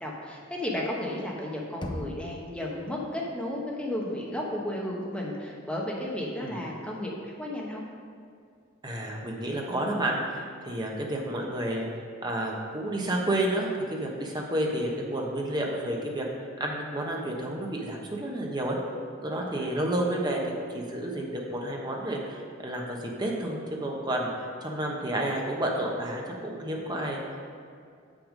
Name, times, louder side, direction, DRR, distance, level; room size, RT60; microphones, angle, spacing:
voice 1, 0.0-7.8 19.5-19.7, left 1 dB, 5° left, -3 dB, 1.1 m, -33 dB
Knock, 1.8-2.7, left 1 dB, 25° left, 0.7 m, -37 dB
voice 2, 8.8-11.9 12.2-16.3 16.6-18.8 19.2-27.2, right 1 dB, 20° right, -1 dB, 1.1 m, -30 dB
7.1 x 6.3 x 5.1 m, 2.3 s
head